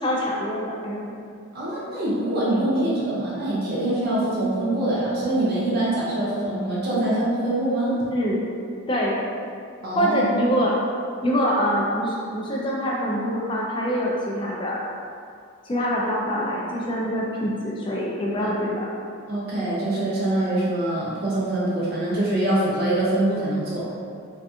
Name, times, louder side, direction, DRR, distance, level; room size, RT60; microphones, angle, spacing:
voice 1, 0.0-1.1 8.1-8.5 8.9-9.2 9.9-10.7 11.2-14.8 15.6-18.9, equal, 20° left, -4 dB, 0.3 m, -25 dB
voice 2, 1.5-7.9 9.8-10.5 18.4-18.5 19.3-23.9, right 1 dB, 45° right, -8 dB, 0.5 m, -24 dB
2.4 x 2.2 x 2.7 m, 2.3 s
head